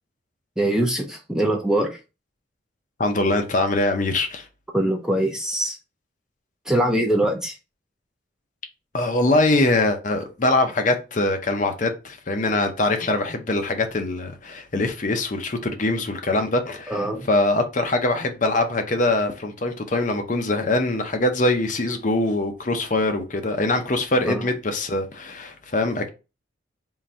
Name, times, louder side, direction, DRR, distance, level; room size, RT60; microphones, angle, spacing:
voice 1, 0.6-2.0 4.7-5.8 6.7-7.5 16.9-17.3 24.3-24.5, right 1 dB, 5° right, 0.5 m, -23 dB
voice 2, 3.0-4.4 8.9-26.1, left 2 dB, 40° left, 0.6 m, -23 dB
3.7 x 2.6 x 4.2 m
head